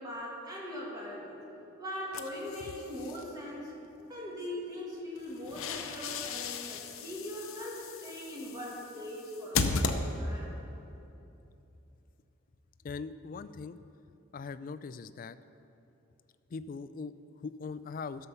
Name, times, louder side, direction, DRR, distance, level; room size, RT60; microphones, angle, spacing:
voice 1, 0.0-1.4 1.8-3.7 4.1-10.6, left 1 dB, 20° right, -4 dB, 2.1 m, -41 dB
sound 1, 2.1-3.2 5.2-10.5, left 4 dB, 85° left, 0.7 m, -36 dB
voice 2, 12.8-13.8 14.3-15.4 16.5-18.3, left 4 dB, 40° left, 13 dB, 0.3 m, -41 dB
12.0 x 6.9 x 5.7 m, 2.9 s
head